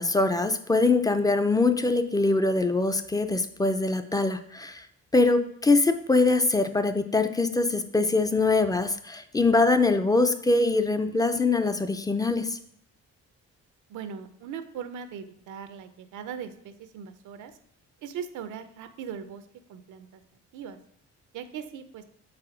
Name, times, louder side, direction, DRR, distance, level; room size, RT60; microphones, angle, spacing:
voice 1, 0.0-4.9 5.1-12.6, left 3 dB, 15° left, 9 dB, 0.4 m, -23 dB
voice 2, 13.9-17.5 18.0-19.4 19.7-20.2 20.5-20.8 21.3-22.0, right 7 dB, 80° right, 10 dB, 0.6 m, -39 dB
4.9 x 4.1 x 4.9 m, 0.68 s
cardioid pair, 90°, 30 cm